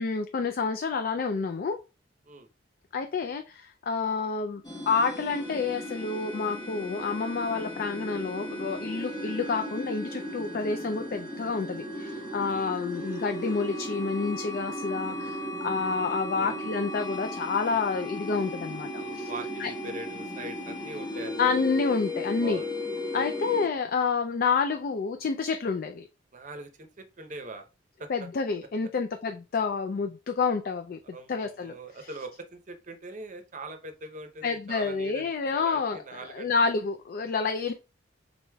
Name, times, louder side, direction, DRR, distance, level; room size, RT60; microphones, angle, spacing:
voice 1, 0.0-1.8 2.9-19.3 19.6-19.7 21.4-22.6 23.1-26.1 28.1-31.7 34.4-37.7, left 5 dB, 50° left, 0.4 m, -29 dB
sound 1, 4.6-23.7, left 1 dB, 25° left, 1.1 m, -36 dB
voice 2, 12.1-12.8 15.1-15.5 16.3-16.6 18.9-21.5 22.4-22.7 23.1-23.3 26.3-27.7 28.0-28.3 31.1-36.5, right 2 dB, 40° right, 0.7 m, -42 dB
4.8 x 3.9 x 2.2 m
head